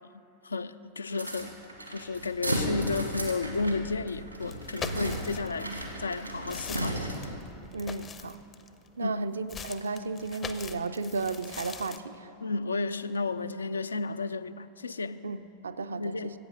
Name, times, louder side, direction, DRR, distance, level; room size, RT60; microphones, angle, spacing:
voice 1, 0.4-1.5 1.9-7.2 9.0-9.3 12.4-15.2 15.9-16.3, left 3 dB, 75° left, 0.3 m, -32 dB
sound 1, 1.1-7.4, right 1 dB, 90° right, 1.4 m, -35 dB
sound 2, 4.5-5.6 6.1-8.9 9.5-12.0, left 6 dB, 25° left, 0.5 m, -42 dB
voice 2, 7.7-8.4 9.0-12.3 15.2-16.3, right 3 dB, 70° right, 0.4 m, -34 dB
15.0 x 8.4 x 5.1 m
figure-of-eight pair, 90°, 0 cm